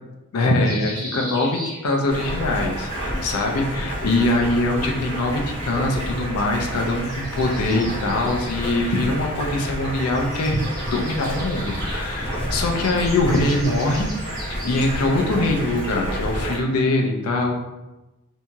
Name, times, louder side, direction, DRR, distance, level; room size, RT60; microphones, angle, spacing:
voice 1, 0.3-10.6 10.9-14.1 14.5-17.5, left 2 dB, 75° left, 1 dB, 0.4 m, -23 dB
sound 1, 0.6-2.4 3.8-4.8 6.8-9.7 10.0-15.2, equal, 15° right, 0.7 m, -39 dB
Stream, 2.1-16.6, equal, 25° left, 1.2 m, -29 dB
2.8 x 2.7 x 2.3 m, 1.0 s
head